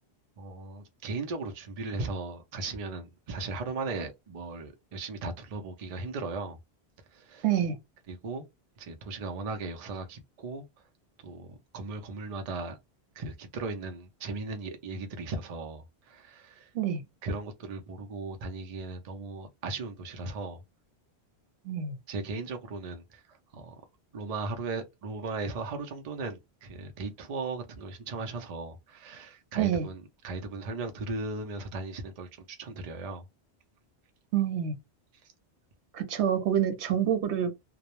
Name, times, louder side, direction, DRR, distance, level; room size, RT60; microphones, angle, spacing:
voice 1, 0.4-6.6 7.1-7.4 8.1-8.5 8.8-10.7 11.2-12.8 13.2-16.7 17.2-20.6 22.1-23.7 24.1-33.2, right 3 dB, 50° right, 0.5 m, -37 dB
voice 2, 7.4-7.8 16.7-17.0 21.7-22.0 29.6-29.9 34.3-34.8 35.9-37.5, right 9 dB, 90° right, 0.9 m, -27 dB
2.2 x 2.0 x 2.9 m
omnidirectional pair, 1.1 m